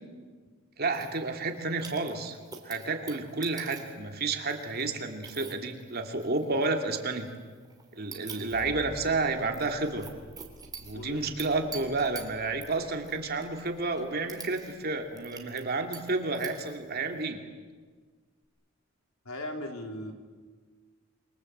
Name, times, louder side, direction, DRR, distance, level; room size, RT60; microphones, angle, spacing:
voice 1, 0.8-2.4 2.6-7.3 7.9-10.1 10.8-17.4, right 3 dB, 45° right, 4 dB, 2.7 m, -31 dB
sound 1, 0.9-17.2, right 6 dB, 20° right, 3.2 m, -49 dB
sound 2, 8.5-16.9 18.4-18.5, equal, ahead, 3.7 m, -52 dB
voice 2, 10.9-11.2 19.3-20.1, left 1 dB, 90° left, 3 dB, 3.7 m, -37 dB
28.0 x 24.0 x 8.0 m, 1.5 s
head